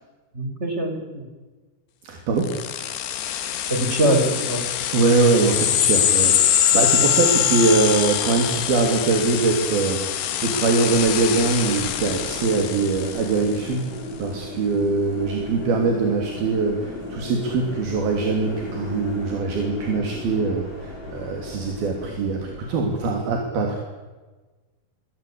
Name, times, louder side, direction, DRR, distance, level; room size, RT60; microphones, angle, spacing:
voice 1, 0.3-1.2 3.7-4.6, right 1 dB, 15° right, 4 dB, 5.3 m, -22 dB
voice 2, 2.0-2.6 4.9-13.8 14.2-23.8, right 3 dB, 70° right, 2 dB, 4.9 m, -22 dB
sound 1, 2.4-13.5, left 10 dB, 90° left, 3.8 m, -23 dB
sound 2, 10.8-23.2, left 2 dB, 45° left, 7.8 m, -36 dB
29.0 x 22.5 x 8.6 m, 1.3 s
omnidirectional pair, 4.5 m